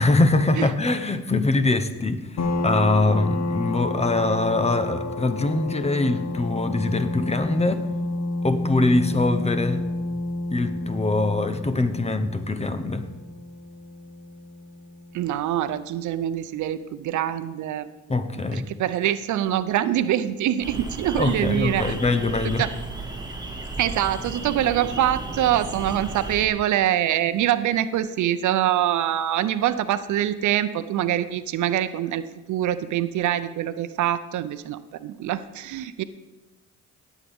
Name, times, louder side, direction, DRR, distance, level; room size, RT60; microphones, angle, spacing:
voice 1, 0.0-7.9 8.4-9.8 10.5-13.0 18.1-18.7 21.2-22.7, left 2 dB, 20° left, 10 dB, 0.9 m, -23 dB
sound 1, 2.4-15.6, left 2 dB, 60° left, 1.4 m, -30 dB
voice 2, 15.1-17.9 18.5-21.9 22.4-22.7 23.8-36.0, right 11 dB, 75° right, 13 dB, 0.6 m, -24 dB
sound 2, 20.6-26.5, right 2 dB, 15° right, 1.8 m, -34 dB
17.5 x 8.3 x 3.6 m, 1.1 s
cardioid pair, 90°, 30 cm